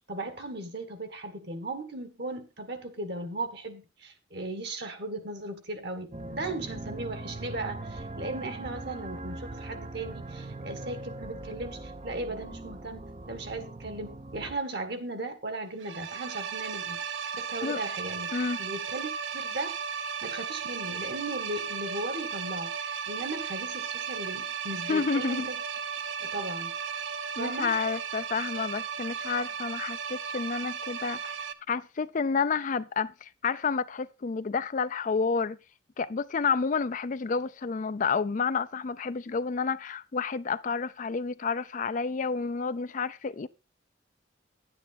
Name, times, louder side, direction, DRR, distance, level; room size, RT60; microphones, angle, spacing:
voice 1, 0.1-17.0 17.3-18.3 18.6-19.8 20.2-25.6 26.2-26.7 27.3-27.7, right 2 dB, 60° right, 1.8 m, -37 dB
sound 1, 6.1-14.6, right 2 dB, 30° right, 0.6 m, -41 dB
sound 2, 15.8-31.5, right 6 dB, 75° right, 0.8 m, -35 dB
voice 2, 24.9-25.5 27.4-35.6 36.0-43.5, left 5 dB, 40° left, 0.4 m, -30 dB
11.0 x 9.0 x 4.1 m
head